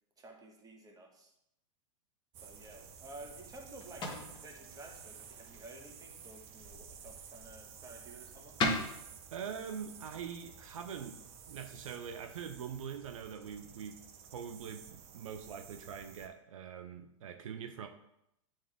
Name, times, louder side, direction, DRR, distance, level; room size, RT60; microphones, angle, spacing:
voice 1, 0.2-1.3 2.4-4.1 4.3-8.5, right 2 dB, 20° right, 2 dB, 1.5 m, -52 dB
sound 1, 2.3-16.3, right 7 dB, 40° right, 0.8 m, -53 dB
sound 2, 2.8-12.0, left 2 dB, 30° left, 1.4 m, -42 dB
voice 2, 9.3-11.2 11.5-14.0 14.3-17.9, right 7 dB, 80° right, 7 dB, 0.6 m, -43 dB
8.9 x 3.6 x 3.5 m, 0.79 s
hypercardioid pair, 110°, 17 cm